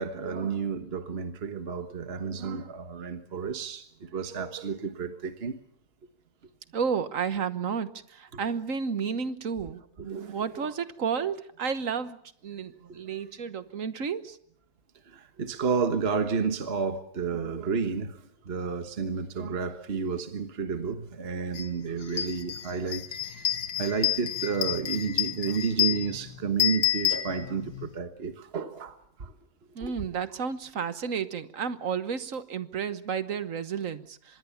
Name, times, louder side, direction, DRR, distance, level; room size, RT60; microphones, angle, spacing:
voice 1, 0.0-5.6 10.0-10.4 15.1-18.2 18.4-23.0 23.8-29.3 29.8-29.9, right 5 dB, 40° right, 1.5 m, -31 dB
voice 2, 6.7-12.2 12.4-14.4 29.7-34.4, right 6 dB, 55° right, 1.5 m, -32 dB
sound 1, 21.6-21.7 22.0-27.9, left 11 dB, 80° left, 2.0 m, -29 dB
25.0 x 21.5 x 7.2 m
omnidirectional pair, 1.7 m